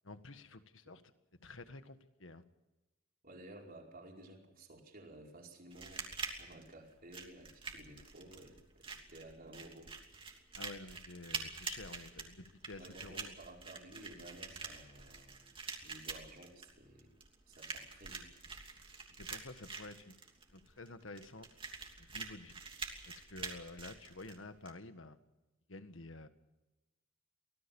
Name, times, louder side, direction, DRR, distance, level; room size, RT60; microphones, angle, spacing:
voice 1, 0.0-1.0 1.3-2.4 10.6-13.3 19.2-20.2 20.5-21.5 22.0-22.6 23.1-25.2 25.7-26.3, left 2 dB, 70° left, 10 dB, 1.7 m, -50 dB
voice 2, 3.2-9.9 12.8-15.6 15.8-17.1 17.5-18.3, right 1 dB, 45° right, 0 dB, 5.0 m, -54 dB
sound 1, 5.7-24.7, right 4 dB, 25° right, 3.0 m, -46 dB
25.0 x 18.0 x 7.1 m, 1.1 s
head